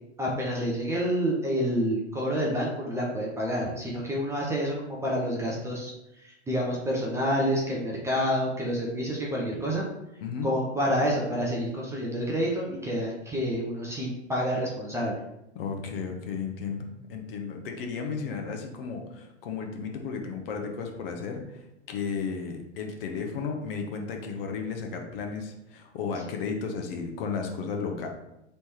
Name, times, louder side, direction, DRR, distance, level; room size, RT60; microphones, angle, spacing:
voice 1, 0.2-5.9 6.2-9.9 10.4-15.2, equal, 10° right, -3 dB, 0.5 m, -28 dB
voice 2, 15.5-28.1, left 5 dB, 50° left, 3 dB, 0.9 m, -34 dB
3.3 x 3.1 x 4.4 m, 0.89 s
figure-of-eight pair, 105°, 36 cm